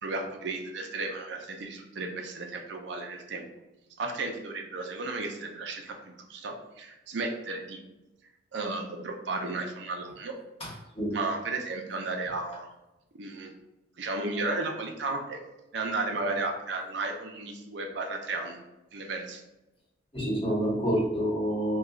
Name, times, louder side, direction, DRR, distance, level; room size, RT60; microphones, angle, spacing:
voice 1, 0.0-3.5 4.0-7.8 8.5-10.4 11.1-12.7 13.2-13.5 14.0-15.4 15.7-18.7 18.9-19.4, right 3 dB, 75° right, 3 dB, 0.5 m, -34 dB
voice 2, 10.6-11.2 20.1-21.8, equal, 30° left, -5 dB, 1.0 m, -28 dB
3.0 x 2.3 x 3.7 m, 1.0 s
head